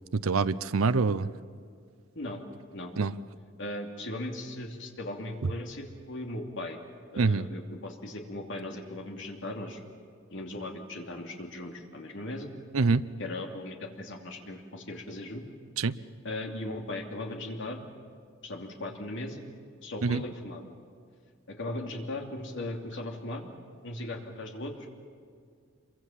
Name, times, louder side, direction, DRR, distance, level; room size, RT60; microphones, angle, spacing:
voice 1, 0.1-1.3 3.0-3.1 7.2-7.5 12.7-13.0 15.8-15.9 20.0-20.2, right 4 dB, 75° right, 13 dB, 0.6 m, -25 dB
voice 2, 3.6-6.8 7.1-9.8 10.3-12.5 13.2-15.4 16.2-17.8 18.4-19.4 19.8-20.6 21.5-23.5 23.8-24.7, left 1 dB, 60° left, 2 dB, 2.8 m, -38 dB
27.0 x 23.5 x 7.4 m, 2.2 s
head